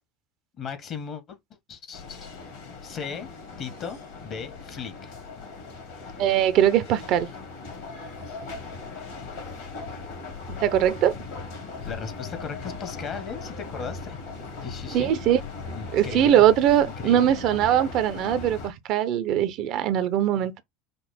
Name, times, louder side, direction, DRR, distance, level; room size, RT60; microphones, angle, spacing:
voice 1, 0.6-1.4 1.7-2.3 2.8-3.3 3.6-5.1 11.9-14.2 14.6-15.1 15.7-16.4 16.8-17.3, left 6 dB, 40° left, 1.1 m, -37 dB
sound 1, 1.9-18.7, left 4 dB, 60° left, 2.1 m, -38 dB
voice 2, 6.2-7.3 10.5-11.2 14.9-15.4 15.9-20.6, right 11 dB, 50° right, 0.6 m, -21 dB
5.2 x 2.0 x 4.1 m
figure-of-eight pair, 70°, 0 cm